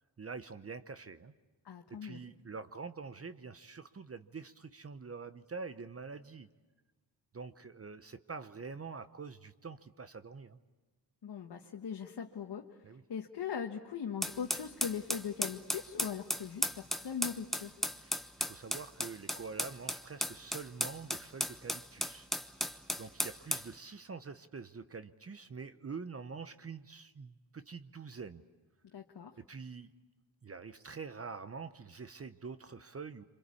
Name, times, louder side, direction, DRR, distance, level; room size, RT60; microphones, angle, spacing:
voice 1, 0.2-1.3 1.9-6.5 7.3-10.6 12.8-13.0 18.0-28.4 29.4-29.9 30.4-33.2, right 5 dB, 35° right, 11 dB, 0.9 m, -46 dB
voice 2, 1.6-2.2 11.2-12.6 13.1-17.7 28.9-29.3, left 7 dB, 70° left, 2 dB, 1.4 m, -40 dB
sound 1, 14.2-23.7, equal, ahead, 1.1 m, -36 dB
27.5 x 25.5 x 8.5 m, 1.2 s
cardioid pair, 85°, 40 cm